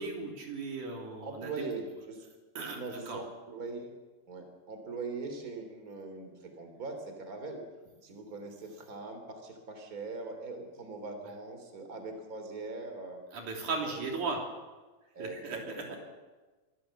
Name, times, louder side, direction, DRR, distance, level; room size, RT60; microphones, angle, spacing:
voice 1, 0.0-1.6 1.9-2.0 2.5-3.2 11.2-11.4 13.3-14.4 15.2-16.0, right 4 dB, 60° right, 1 dB, 4.6 m, -37 dB
voice 2, 1.2-2.3 2.6-3.9 4.3-7.6 8.0-13.2 13.8-14.0 15.1-16.0, right 3 dB, 25° right, 6 dB, 3.2 m, -41 dB
24.5 x 15.5 x 7.4 m, 1.3 s
omnidirectional pair, 4.2 m